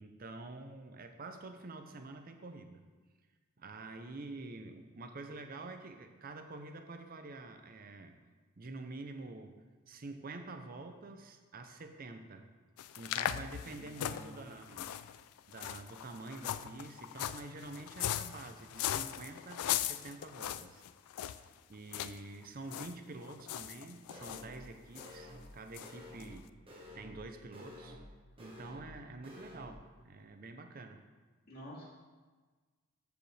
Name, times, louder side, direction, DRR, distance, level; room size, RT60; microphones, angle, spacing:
voice 1, 0.0-2.8 3.6-8.1 8.6-12.5 13.0-14.9 15.5-20.8 21.3-26.6 26.9-28.0 28.4-31.0, right 2 dB, 40° right, 6 dB, 0.6 m, -47 dB
sound 1, 12.8-21.5 21.9-22.2 22.4-22.9 23.2-24.4 25.0-25.1 25.7-25.9 26.2-26.3, left 11 dB, 80° left, 0.3 m, -39 dB
voice 2, 13.6-14.5 31.5-31.9, equal, 40° left, -7 dB, 2.6 m, -50 dB
sound 2, 24.1-24.7 24.9-25.5 25.8-26.4 26.7-27.2 27.5-28.1 28.4-28.9 29.2-29.7, left 1 dB, 25° right, 1.3 m, -51 dB
13.0 x 5.0 x 3.3 m, 1.4 s
head